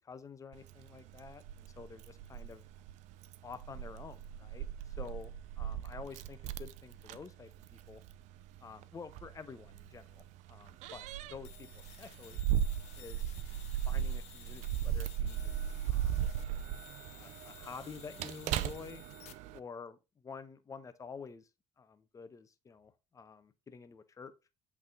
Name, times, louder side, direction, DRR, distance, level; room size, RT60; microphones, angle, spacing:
voice 1, 0.0-2.6 3.4-4.7 5.0-8.0 8.6-12.4 13.0-13.3 13.9-15.5 15.8-16.3 17.1-19.0 19.5-21.5 21.8-24.3, left 5 dB, 25° left, 0.9 m, -49 dB
Keys jangling, 0.5-19.6, right 10 dB, 80° right, 0.5 m, -38 dB
sound 1, 11.4-19.3, left 13 dB, 70° left, 0.7 m, -55 dB
8.0 x 3.6 x 3.6 m
cardioid pair, 110°, 12 cm